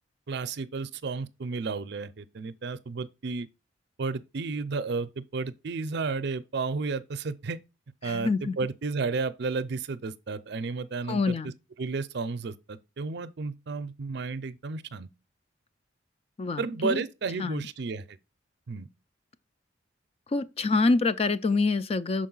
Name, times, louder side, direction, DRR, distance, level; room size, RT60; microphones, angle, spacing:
voice 1, 0.3-3.5 4.0-7.6 8.0-11.5 11.8-15.1 16.6-18.2 18.7-18.9, right 4 dB, 60° right, 0.5 m, -32 dB
voice 2, 8.0-8.6 11.1-11.5 16.4-17.0 17.4-17.6 20.3-22.3, left 3 dB, 30° left, 0.4 m, -26 dB
6.4 x 4.6 x 3.8 m
head